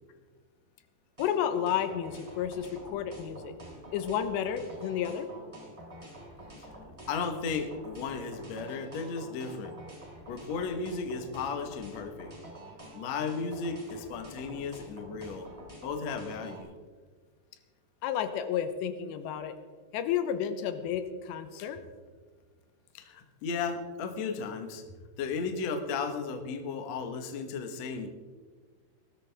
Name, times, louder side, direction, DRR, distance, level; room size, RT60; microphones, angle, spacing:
voice 1, 1.2-3.5 3.9-5.3 18.0-19.5 19.9-21.8, left 9 dB, 90° left, 9 dB, 3.1 m, -31 dB
sound 1, 1.2-16.6, right 1 dB, 10° right, 2.8 m, -47 dB
voice 2, 7.1-9.8 10.3-12.3 12.9-15.5 15.8-16.7 22.9-24.8 25.2-28.1, left 5 dB, 65° left, 6 dB, 1.7 m, -35 dB
18.5 x 13.5 x 3.5 m, 1.5 s
omnidirectional pair, 4.9 m